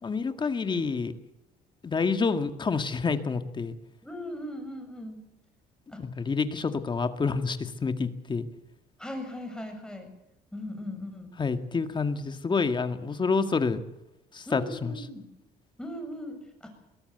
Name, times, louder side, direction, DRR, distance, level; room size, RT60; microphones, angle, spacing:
voice 1, 0.0-1.1 1.8-3.8 6.0-8.5 11.4-13.8 14.3-14.9, left 4 dB, 30° left, 8 dB, 2.0 m, -28 dB
voice 2, 4.0-5.2 5.9-6.0 9.0-10.1 10.5-11.3 14.5-15.3 15.8-16.7, left 1 dB, 5° left, 5 dB, 7.1 m, -38 dB
22.0 x 18.0 x 8.1 m, 0.90 s
cardioid pair, 110°, 17 cm